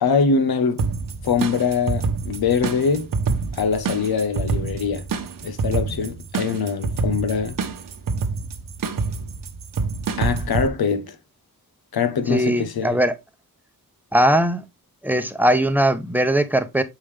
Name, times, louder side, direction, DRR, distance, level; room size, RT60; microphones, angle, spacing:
voice 1, 0.0-0.8 1.2-3.1 3.5-5.1 5.4-7.6 10.2-11.2 11.9-13.0, left 5 dB, 80° left, 1.0 m, -23 dB
sound 1, 0.8-10.7, right 4 dB, 60° right, 1.1 m, -27 dB
voice 2, 12.3-13.1 14.1-14.6 15.0-16.8, right 1 dB, 5° right, 0.8 m, -19 dB
6.8 x 5.3 x 3.3 m
wide cardioid pair, 120°, 37 cm